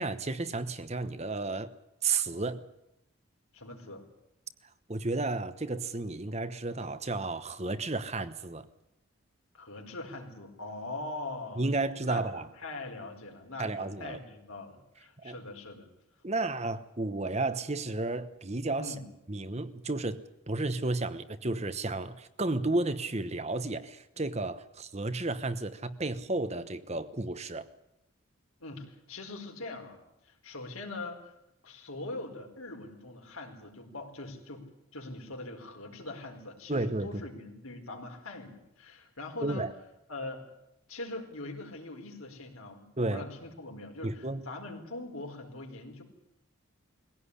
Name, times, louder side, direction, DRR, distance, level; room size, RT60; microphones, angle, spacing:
voice 1, 0.0-1.7 2.0-2.6 4.9-8.7 11.6-12.5 13.6-14.2 15.2-15.4 16.2-18.9 19.3-20.2 20.5-27.7 36.7-37.1 39.4-39.7 43.0-43.2 44.0-44.5, right 2 dB, 30° right, 11 dB, 1.0 m, -32 dB
voice 2, 3.5-4.0 9.5-11.6 12.0-15.9 18.8-19.1 28.6-31.3 31.6-34.7 34.9-39.7 40.1-40.4 40.9-46.0, left 2 dB, 80° left, 3 dB, 4.6 m, -42 dB
21.5 x 17.0 x 9.9 m, 0.84 s
head